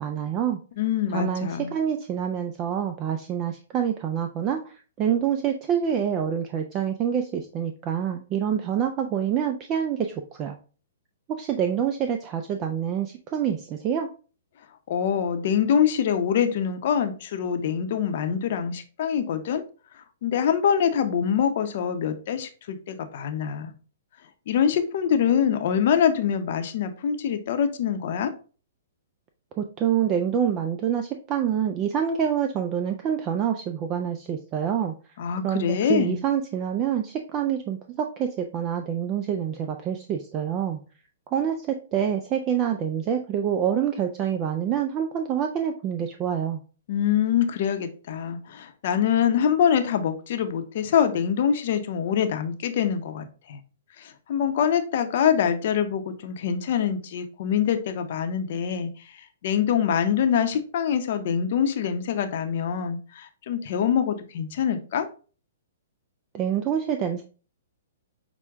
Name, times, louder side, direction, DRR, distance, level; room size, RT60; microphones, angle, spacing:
voice 1, 0.0-0.6 1.1-10.6 11.3-14.1 29.6-34.9 35.4-40.8 41.3-46.6 66.3-67.2, right 9 dB, 25° right, 5 dB, 0.4 m, -26 dB
voice 2, 0.8-1.7 14.9-19.6 20.2-23.7 24.5-28.3 35.2-36.2 46.9-53.6 54.0-58.9 59.4-65.1, left 8 dB, 55° left, 8 dB, 0.7 m, -24 dB
6.0 x 2.2 x 3.5 m, 0.38 s
hypercardioid pair, 150°, 0 cm